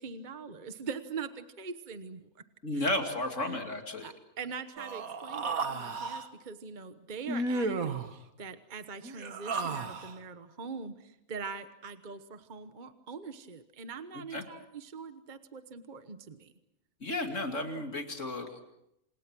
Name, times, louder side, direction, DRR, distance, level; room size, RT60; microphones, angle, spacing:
voice 1, 0.0-2.3 2.7-2.9 3.4-3.6 4.0-16.5, right 5 dB, 35° right, 9 dB, 1.3 m, -43 dB
voice 2, 2.6-4.1 14.3-14.4 17.0-18.6, left 1 dB, 60° left, 4 dB, 2.9 m, -33 dB
Human voice, 4.8-6.3 7.3-8.1 9.0-10.2, right 3 dB, 90° right, 2.0 m, -33 dB
28.5 x 27.5 x 6.2 m, 0.83 s
omnidirectional pair, 1.4 m